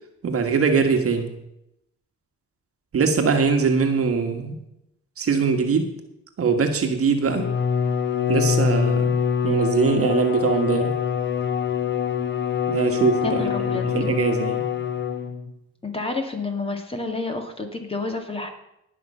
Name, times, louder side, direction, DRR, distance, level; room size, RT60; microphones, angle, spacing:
voice 1, 0.2-1.3 2.9-4.6 5.2-5.9 6.4-7.5 8.3-9.1 9.4-10.9 12.7-14.6, right 5 dB, 50° right, 5 dB, 1.6 m, -22 dB
Bowed string instrument, 7.2-15.5, left 7 dB, 40° left, 1.0 m, -24 dB
voice 2, 13.2-13.8 15.8-18.5, left 3 dB, 20° left, 4 dB, 2.2 m, -29 dB
18.0 x 6.1 x 5.6 m, 0.83 s
cardioid pair, 90°, 30 cm